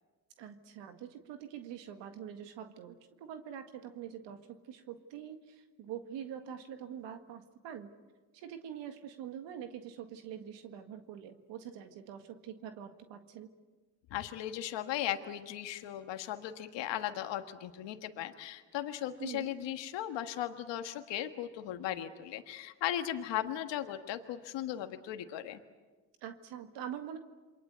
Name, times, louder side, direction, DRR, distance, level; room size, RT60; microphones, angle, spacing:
voice 1, 0.4-7.9 8.3-13.5 19.2-19.5 26.2-27.2, right 9 dB, 90° right, 7 dB, 1.9 m, -45 dB
voice 2, 14.1-25.6, left 12 dB, 85° left, 7 dB, 1.7 m, -37 dB
28.0 x 23.0 x 8.2 m, 1.3 s
supercardioid pair, 70°, 42 cm